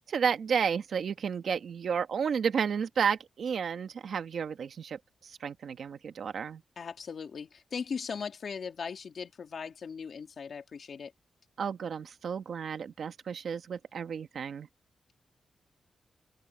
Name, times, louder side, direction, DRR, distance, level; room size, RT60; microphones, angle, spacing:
voice 1, 0.1-6.6 11.6-14.7, right 6 dB, 70° right, 1.5 m, -32 dB
voice 2, 6.8-11.1, left 6 dB, 55° left, 2.6 m, -38 dB
open air
wide cardioid pair, 135°, 0 cm